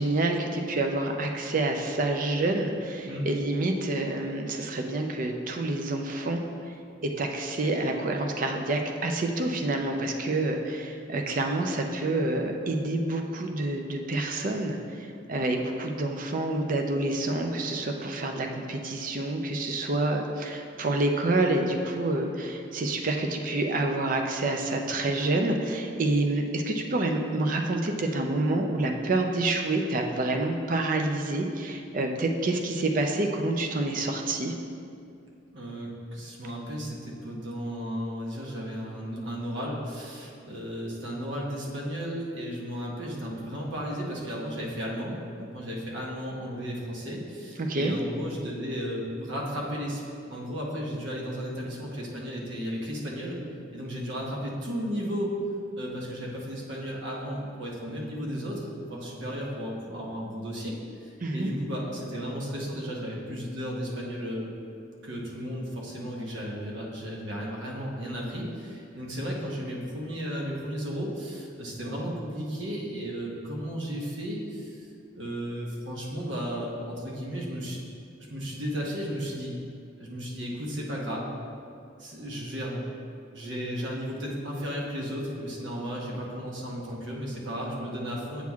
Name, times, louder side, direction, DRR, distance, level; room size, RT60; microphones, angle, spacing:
voice 1, 0.0-6.4 7.0-34.5 47.6-47.9 61.2-61.5, right 2 dB, 45° right, 3 dB, 0.5 m, -28 dB
voice 2, 35.5-50.0 50.3-53.4 53.7-55.3 55.8-64.5 65.0-74.9 75.1-77.8 78.3-79.6 80.0-81.3 82.0-82.8 83.1-88.4, equal, 70° right, -2 dB, 1.0 m, -34 dB
8.2 x 6.0 x 2.4 m, 2.5 s
head